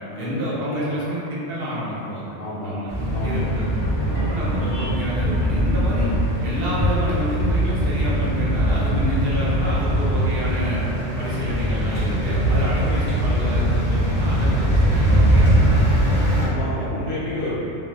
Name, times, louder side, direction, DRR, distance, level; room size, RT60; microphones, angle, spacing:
voice 1, 0.2-2.4 2.6-2.9 3.2-3.8 4.3-6.1 6.4-10.8 11.2-16.0 16.3-16.4, equal, 55° right, -7 dB, 0.8 m, -28 dB
voice 2, 2.4-2.7 3.1-3.5 4.0-4.4 16.3-17.6, left 1 dB, 60° left, -8 dB, 0.8 m, -30 dB
sound 1, 2.9-16.5, right 1 dB, 15° left, 0.5 m, -21 dB
2.5 x 2.3 x 3.2 m, 2.9 s
omnidirectional pair, 1.3 m